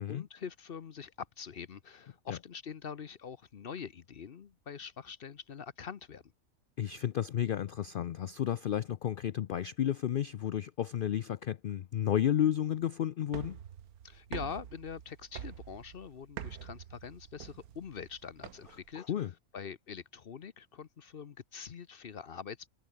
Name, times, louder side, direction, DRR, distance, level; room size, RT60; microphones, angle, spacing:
voice 1, 0.0-6.2 14.0-19.0 19.5-22.7, left 7 dB, 45° left, 0.9 m, -44 dB
voice 2, 6.8-13.6 19.0-19.3, left 10 dB, 85° left, 0.4 m, -32 dB
sound 1, 13.2-18.9, right 9 dB, 90° right, 1.5 m, -46 dB
omnidirectional pair, 1.5 m